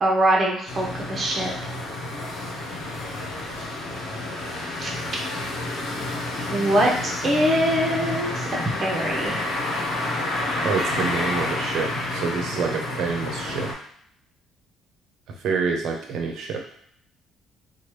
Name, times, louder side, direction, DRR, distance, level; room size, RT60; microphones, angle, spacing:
voice 1, 0.0-1.7 4.8-4.9 6.5-8.4 8.8-9.4, right 1 dB, 30° right, -1 dB, 0.8 m, -23 dB
sound 1, 0.7-13.7, left 2 dB, 70° left, 1.0 m, -29 dB
voice 2, 10.6-13.7 15.4-16.6, right 5 dB, 65° right, 2 dB, 0.6 m, -27 dB
3.1 x 2.2 x 3.1 m, 0.65 s
cardioid pair, 125°, 0 cm